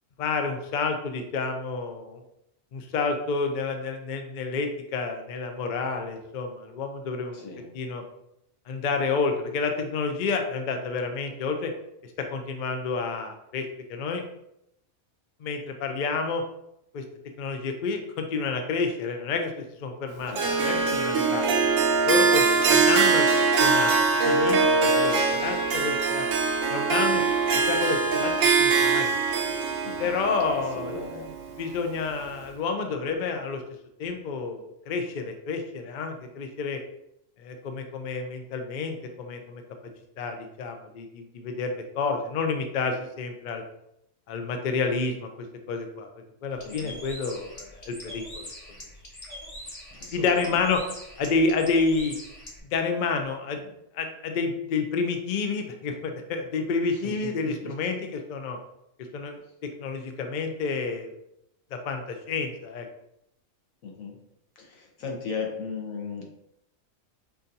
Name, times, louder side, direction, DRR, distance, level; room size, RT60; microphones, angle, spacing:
voice 1, 0.2-2.2 2.7-7.4 7.7-8.0 8.7-11.7 12.0-14.2 15.4-16.4 16.9-17.0 17.4-20.4 20.6-21.5 22.0-23.3 23.6-26.3 26.7-27.4 27.7-29.2 30.0-30.9 31.6-33.6 34.0-36.8 37.4-39.6 40.2-43.6 44.3-45.3 45.7-46.1 46.4-48.5 50.1-50.8 51.2-52.2 52.7-53.7 53.9-58.6 59.1-59.4 59.8-61.1 61.7-62.9, left 4 dB, 60° left, 5 dB, 0.5 m, -29 dB
voice 2, 7.3-7.7 20.3-20.6 29.8-30.0 30.5-31.3 46.7-47.0 49.9-50.6 57.2-57.3 57.6-57.7 63.8-64.2 64.6-66.3, left 4 dB, 80° left, -1 dB, 1.3 m, -36 dB
Harp, 20.3-31.6, right 4 dB, 75° right, 1.0 m, -22 dB
Bird, 46.5-52.6, left 1 dB, 30° left, 0.8 m, -43 dB
5.8 x 2.6 x 2.7 m, 0.81 s
omnidirectional pair, 1.4 m